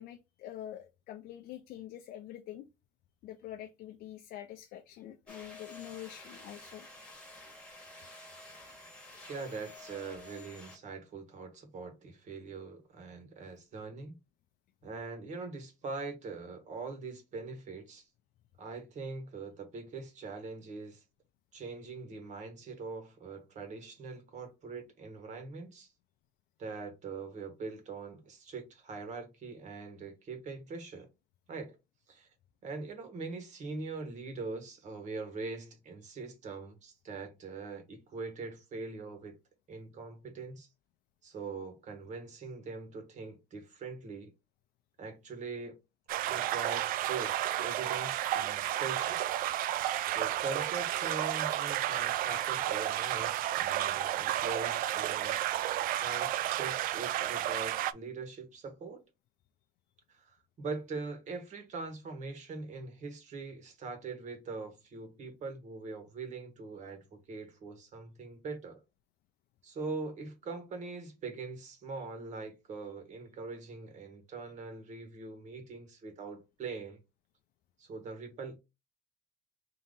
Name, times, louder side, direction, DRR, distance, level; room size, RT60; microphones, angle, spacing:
voice 1, 0.0-2.7 3.2-6.9 49.5-49.6, left 12 dB, 75° left, 0.5 m, -46 dB
sound 1, 5.3-10.8, left 2 dB, 5° left, 1.4 m, -50 dB
voice 2, 9.3-14.2 14.8-18.1 18.6-21.0 21.5-25.9 26.6-31.1 31.5-31.8 32.1-32.3 32.6-39.4 39.7-40.7 41.2-44.3 45.0-45.8 46.3-49.4 50.0-55.4 56.0-59.0 60.1-68.8 69.6-77.0 77.8-78.6, right 4 dB, 50° right, 1.4 m, -42 dB
sound 2, 46.1-57.9, right 13 dB, 65° right, 0.4 m, -32 dB
3.9 x 2.8 x 3.7 m
cardioid pair, 130°, 16 cm